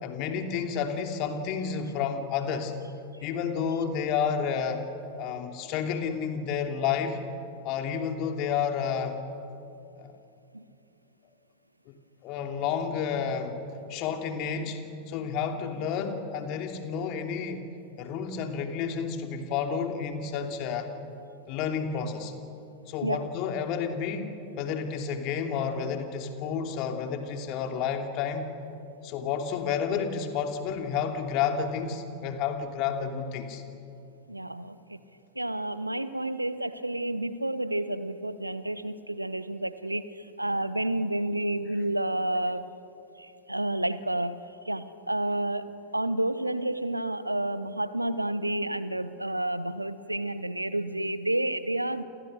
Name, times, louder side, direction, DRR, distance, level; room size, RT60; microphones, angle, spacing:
voice 1, 0.0-2.7 3.2-4.8 5.1-7.2 7.6-9.2 10.0-10.1 11.9-12.0 12.2-13.6 13.9-17.7 18.0-20.9 21.5-22.3 22.9-28.5 29.0-33.6, left 7 dB, 40° left, 5 dB, 2.9 m, -30 dB
voice 2, 34.3-35.0 35.3-42.6 43.2-45.7 45.9-52.0, right 1 dB, 85° right, 15 dB, 1.0 m, -30 dB
29.0 x 28.5 x 6.6 m, 2.7 s
figure-of-eight pair, 90°, 0 cm